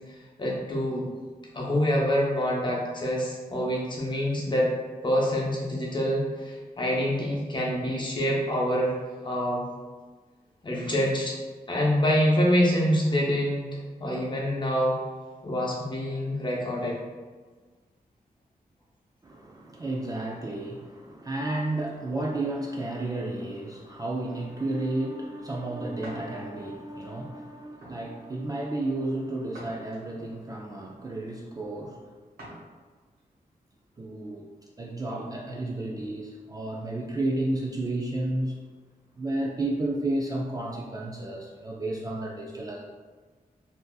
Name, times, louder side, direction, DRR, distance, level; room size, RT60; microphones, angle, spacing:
voice 1, 0.4-1.1 1.5-4.7 5.0-9.0 9.2-9.6 10.6-11.4 11.7-13.7 14.0-15.0 15.4-17.0, equal, 30° left, -4 dB, 0.7 m, -26 dB
voice 2, 19.2-32.1 34.0-34.4 34.8-38.6 39.2-42.8, right 2 dB, 25° right, -2 dB, 0.3 m, -32 dB
sound 1, 26.0-26.3 26.9-27.1 27.8-28.1 29.5-30.3 32.4-32.7 33.2-33.3 34.9-35.6, right 1 dB, 80° right, 1.1 m, -46 dB
3.4 x 2.6 x 2.3 m, 1.4 s
wide cardioid pair, 110°, 16 cm